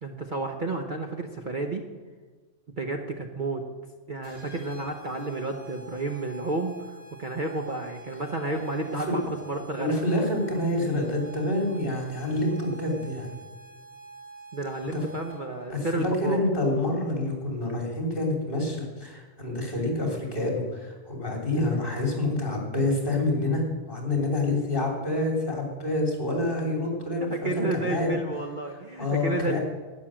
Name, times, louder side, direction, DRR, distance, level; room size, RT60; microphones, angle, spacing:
voice 1, 0.0-1.8 2.8-3.6 4.1-10.0 14.5-16.4 27.3-29.6, right 2 dB, 40° right, 3 dB, 1.0 m, -31 dB
sound 1, 4.2-15.6, right 3 dB, 85° right, 4.9 m, -47 dB
voice 2, 8.8-9.2 9.7-13.3 14.9-15.0 15.7-28.1 29.0-29.6, left 2 dB, 40° left, 0 dB, 3.5 m, -27 dB
12.0 x 10.0 x 7.5 m, 1.4 s
omnidirectional pair, 1.4 m